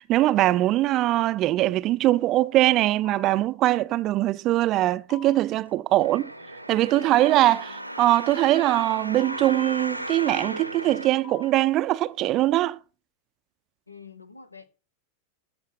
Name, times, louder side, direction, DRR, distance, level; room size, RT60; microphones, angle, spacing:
voice 1, 0.0-6.3 6.7-12.8, right 15 dB, 35° right, 0.4 m, -22 dB
sound 1, 3.0-3.5 5.1-5.6 7.1-7.6 9.2-9.7 11.2-11.7, left 6 dB, 40° left, 4.3 m, -46 dB
voice 2, 6.0-6.5 6.7-7.9 13.9-14.7, left 4 dB, 85° left, 0.9 m, -47 dB
sound 2, 6.0-11.9 12.5-12.6, right 1 dB, 90° right, 0.8 m, -36 dB
14.0 x 5.8 x 5.9 m
figure-of-eight pair, 90°, 0 cm